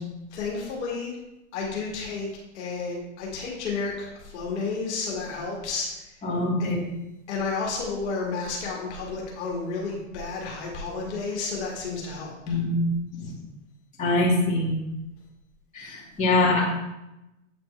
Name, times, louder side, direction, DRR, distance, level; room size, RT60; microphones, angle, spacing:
voice 1, 0.3-1.1 1.5-2.3 2.5-6.1 7.3-12.6, left 4 dB, 55° left, -3 dB, 1.9 m, -31 dB
voice 2, 6.2-6.8 12.5-12.8 14.0-14.7 15.7-16.6, left 2 dB, 20° left, -7 dB, 1.9 m, -23 dB
8.1 x 4.2 x 3.3 m, 0.95 s
hypercardioid pair, 135°, 40 cm